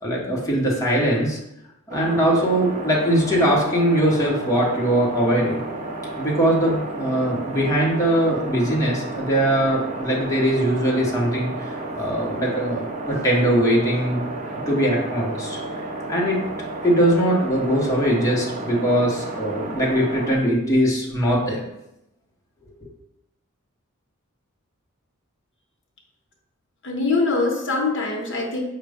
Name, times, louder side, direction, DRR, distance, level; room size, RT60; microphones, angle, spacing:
voice 1, 0.0-1.4 1.9-5.6 6.2-14.2 14.7-15.6 16.1-16.4 16.8-21.6 22.8-22.9, right 1 dB, 15° left, -4 dB, 0.9 m, -21 dB
sound 1, 1.9-20.4, right 2 dB, 35° right, 0.6 m, -32 dB
voice 2, 26.8-28.6, left 3 dB, 60° left, 0 dB, 0.8 m, -23 dB
5.0 x 2.2 x 4.8 m, 0.86 s
head